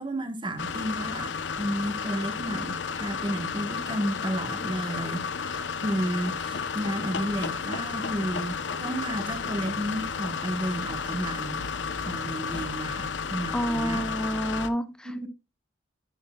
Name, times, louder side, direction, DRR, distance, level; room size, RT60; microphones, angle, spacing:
voice 1, 0.0-11.7 12.0-14.1 14.8-15.3, right 1 dB, 25° right, 1.2 m, -32 dB
sound 1, 0.6-14.7, left 5 dB, 75° left, 0.7 m, -32 dB
voice 2, 13.5-15.3, equal, 5° left, 0.5 m, -29 dB
10.5 x 6.5 x 2.2 m
head